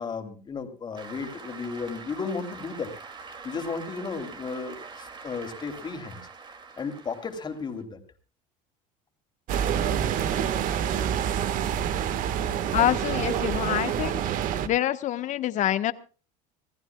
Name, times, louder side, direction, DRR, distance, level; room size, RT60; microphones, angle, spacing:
voice 1, 0.0-2.9 3.4-6.2 6.8-8.0, left 5 dB, 25° left, 6 dB, 3.2 m, -34 dB
Cheering / Applause, 0.9-7.8, right 4 dB, 25° right, 2.6 m, -44 dB
sound 1, 9.5-14.7, right 9 dB, 50° right, 1.6 m, -27 dB
voice 2, 12.7-14.2 14.6-15.9, left 12 dB, 45° left, 12 dB, 1.3 m, -26 dB
27.0 x 15.0 x 2.3 m, 0.37 s
supercardioid pair, 110°, 17 cm